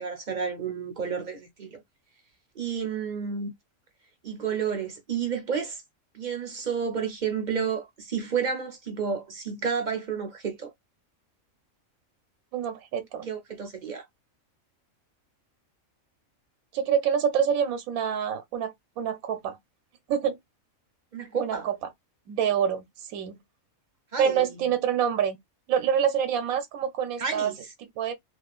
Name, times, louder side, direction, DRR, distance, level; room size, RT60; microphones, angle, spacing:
voice 1, 0.0-1.8 2.6-3.5 4.2-5.8 6.1-10.7 13.3-14.1 21.1-21.7 24.1-24.7 27.2-27.6, right 6 dB, 45° right, 0.6 m, -31 dB
voice 2, 12.5-13.3 16.7-19.6 20.1-20.4 21.4-21.8 22.3-23.4 24.2-25.4 25.7-27.5 27.8-28.1, right 8 dB, 90° right, 1.0 m, -26 dB
2.8 x 2.3 x 2.2 m
omnidirectional pair, 1.4 m